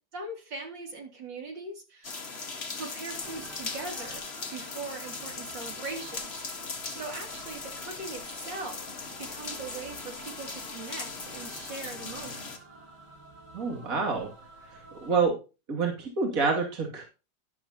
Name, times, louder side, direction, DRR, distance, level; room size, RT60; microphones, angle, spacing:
voice 1, 0.1-2.2 2.8-6.4 6.9-12.6, right 3 dB, 65° right, 1 dB, 3.4 m, -41 dB
sound 1, 2.0-12.6, left 4 dB, 35° left, 1.6 m, -39 dB
sound 2, 3.1-15.2, right 2 dB, 90° right, 8.1 m, -51 dB
voice 2, 13.5-14.3 14.7-15.4 15.7-17.0, right 4 dB, 45° right, 0 dB, 2.8 m, -27 dB
13.0 x 11.0 x 2.9 m, 0.31 s
omnidirectional pair, 2.2 m